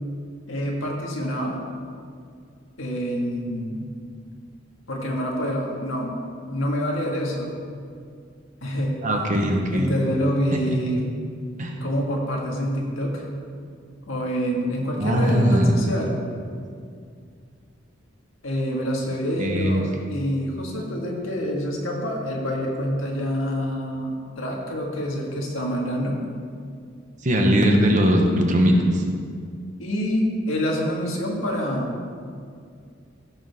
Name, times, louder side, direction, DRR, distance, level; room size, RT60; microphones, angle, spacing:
voice 1, 0.5-1.6 2.8-3.9 4.9-7.6 8.6-9.0 9.7-11.1 11.8-13.3 14.1-16.2 18.4-26.2 29.8-31.9, equal, 90° left, -1 dB, 1.8 m, -26 dB
voice 2, 9.0-9.9 10.5-10.8 11.6-11.7 15.0-15.8 19.4-20.1 27.2-29.0, equal, 40° right, 2 dB, 1.1 m, -20 dB
15.0 x 6.4 x 3.6 m, 2.2 s
head